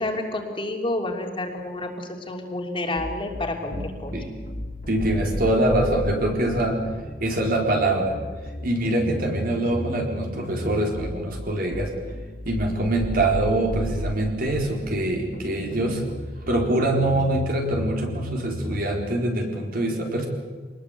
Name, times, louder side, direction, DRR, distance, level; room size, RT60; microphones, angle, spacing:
voice 1, 0.0-4.1, left 2 dB, 30° left, 2 dB, 3.0 m, -29 dB
sound 1, 3.0-18.9, equal, 50° left, 2.6 m, -35 dB
voice 2, 4.9-6.8 7.2-8.1 8.6-11.9 12.4-16.0 16.5-20.3, right 1 dB, 55° right, 1 dB, 4.5 m, -24 dB
25.0 x 20.0 x 8.3 m, 1.4 s
head